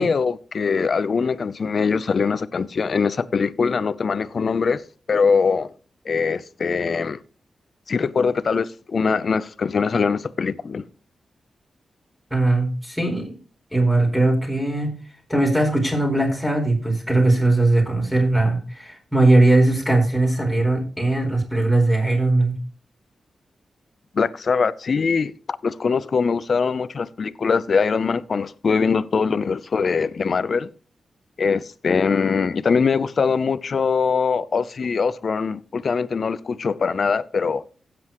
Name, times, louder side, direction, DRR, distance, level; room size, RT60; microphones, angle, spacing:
voice 1, 0.0-4.8 5.1-5.7 6.1-7.2 7.9-10.8 24.1-30.7 31.4-37.6, left 5 dB, 60° left, 0.5 m, -22 dB
voice 2, 12.3-13.4 13.7-14.9 15.3-22.5, right 2 dB, ahead, 4.5 m, -19 dB
16.5 x 7.8 x 3.0 m
cardioid pair, 70°, 0 cm